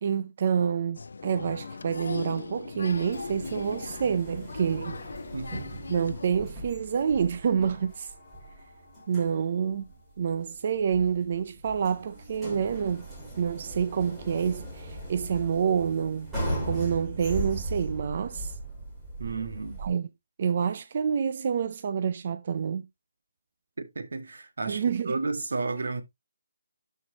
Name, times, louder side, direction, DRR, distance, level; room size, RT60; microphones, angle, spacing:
voice 1, 0.0-5.0 5.9-8.1 9.1-9.8 10.2-13.1 13.4-16.3 16.6-18.5 19.8-20.1 20.4-22.8 24.7-25.2, right 7 dB, 35° right, 0.5 m, -28 dB
Applause, 0.9-6.3, left 4 dB, 70° left, 0.6 m, -39 dB
sound 1, 1.2-11.0, left 5 dB, 25° left, 1.5 m, -52 dB
sound 2, 2.9-19.9, right 1 dB, 5° right, 3.0 m, -38 dB
voice 2, 5.3-5.7 19.2-19.8 23.8-26.0, right 3 dB, 75° right, 1.8 m, -32 dB
12.0 x 4.6 x 2.8 m
hypercardioid pair, 175°, 0 cm